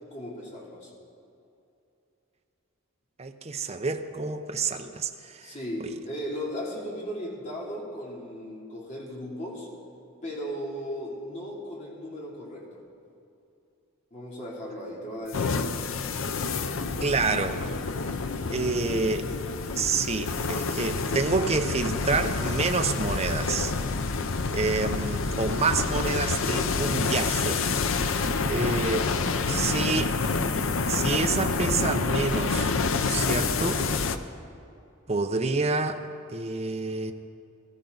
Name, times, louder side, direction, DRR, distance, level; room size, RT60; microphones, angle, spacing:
voice 1, 0.1-0.9 5.4-9.7 10.2-12.8 14.1-16.1, equal, 35° left, -4 dB, 3.1 m, -36 dB
voice 2, 3.2-5.5 5.8-5.9 17.0-17.6 18.5-19.3 19.8-23.7 24.5-28.0 28.4-29.1 29.5-30.2 30.9-32.7 33.1-33.9 35.1-36.0 36.3-37.1, right 4 dB, 30° right, 6 dB, 0.7 m, -28 dB
sound 1, 15.3-34.2, left 4 dB, 70° left, 0.7 m, -28 dB
20.0 x 14.0 x 4.0 m, 2.6 s
head